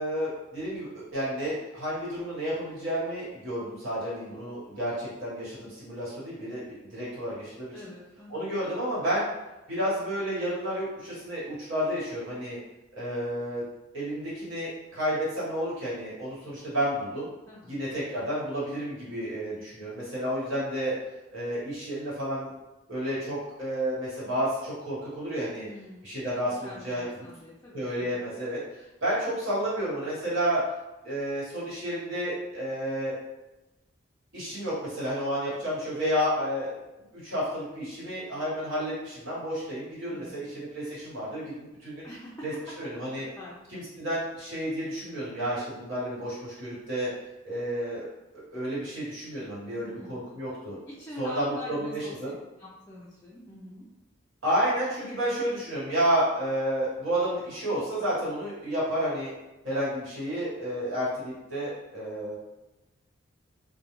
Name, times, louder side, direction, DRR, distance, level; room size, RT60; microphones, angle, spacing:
voice 1, 0.0-7.9 8.3-9.3 9.7-12.6 12.9-13.6 13.9-17.3 17.7-20.9 21.3-22.5 22.9-25.7 26.0-27.0 27.7-28.6 29.0-30.6 31.0-33.1 34.3-36.8 37.1-42.0 42.4-42.5 42.8-43.3 43.7-47.1 47.4-50.8 51.2-52.3 54.4-59.3 59.6-62.4, equal, 80° right, -9 dB, 1.2 m, -31 dB
voice 2, 7.7-8.5 17.5-17.7 25.6-26.1 26.6-28.2 40.1-40.5 42.0-42.5 43.4-43.8 49.8-50.3 50.8-52.2 52.6-53.9, left 1 dB, 15° left, -7 dB, 0.3 m, -44 dB
2.3 x 2.1 x 3.0 m, 1.0 s
head